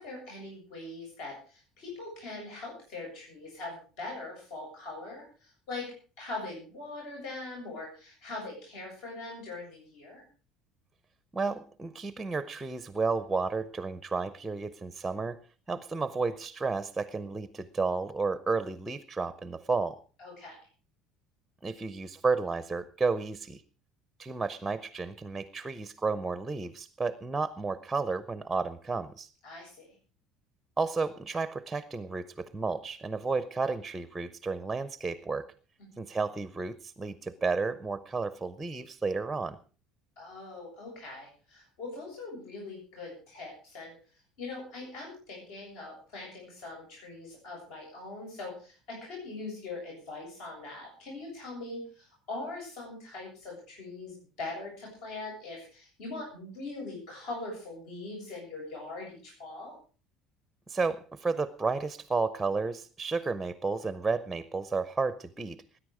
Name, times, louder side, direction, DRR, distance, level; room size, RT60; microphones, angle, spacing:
voice 1, 0.0-5.9 6.2-10.2 20.2-20.6 29.4-29.9 35.8-35.9 40.2-43.9 44.4-59.8, left 2 dB, 65° left, -1 dB, 7.7 m, -41 dB
voice 2, 11.3-15.4 15.7-20.0 21.6-23.6 24.2-29.3 30.8-35.5 36.0-39.6 60.7-65.6, right 4 dB, 10° right, 13 dB, 0.6 m, -32 dB
20.0 x 9.9 x 4.9 m, 0.39 s
cardioid pair, 160°, 0 cm